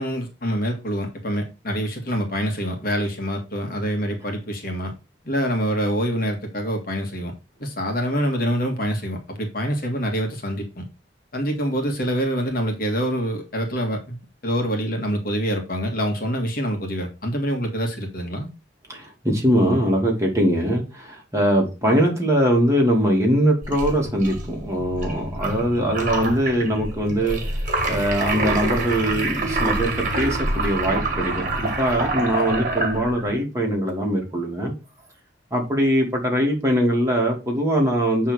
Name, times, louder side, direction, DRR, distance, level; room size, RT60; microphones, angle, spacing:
voice 1, 0.0-4.9 5.3-7.3 7.6-10.8 11.3-14.2 14.4-18.5, equal, 50° left, 1.8 m, -25 dB
voice 2, 18.9-27.4 27.9-29.9 30.2-34.7 35.5-38.3, equal, 15° right, 2.5 m, -22 dB
sound 1, 23.6-33.4, right 2 dB, 40° right, 1.9 m, -26 dB
7.8 x 3.7 x 6.2 m
head